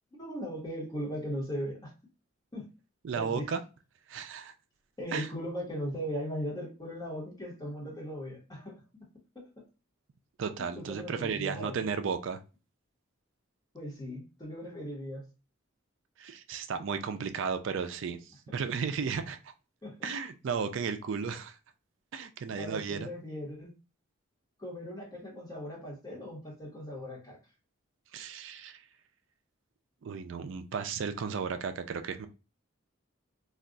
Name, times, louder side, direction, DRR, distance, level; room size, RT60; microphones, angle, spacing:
voice 1, 0.2-1.9 2.5-2.7 3.1-3.5 5.0-8.8 9.3-9.7 10.7-11.8 13.7-15.2 19.8-20.1 22.6-23.7 24.6-27.4, equal, 20° left, 1.0 m, -38 dB
voice 2, 3.0-3.6 4.1-4.5 5.1-5.3 10.4-12.4 16.2-18.2 18.5-19.5 20.0-21.6 22.1-23.1 28.1-28.8 30.0-32.3, right 6 dB, 65° right, 0.4 m, -34 dB
2.3 x 2.3 x 3.7 m
head